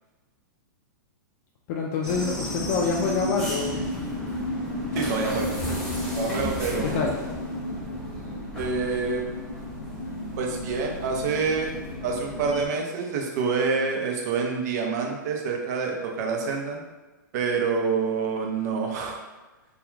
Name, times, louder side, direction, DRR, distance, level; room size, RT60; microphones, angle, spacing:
voice 1, 1.7-3.9 6.8-7.1, left 5 dB, 50° left, -2 dB, 0.4 m, -26 dB
sound 1, 2.0-12.7, left 1 dB, 5° left, 0.8 m, -32 dB
voice 2, 4.9-5.5 6.1-7.1 8.5-9.2 10.4-11.7 12.0-16.8 17.3-19.2, right 5 dB, 55° right, 1 dB, 0.6 m, -27 dB
2.3 x 2.3 x 3.1 m, 1.2 s
hypercardioid pair, 120°, 11 cm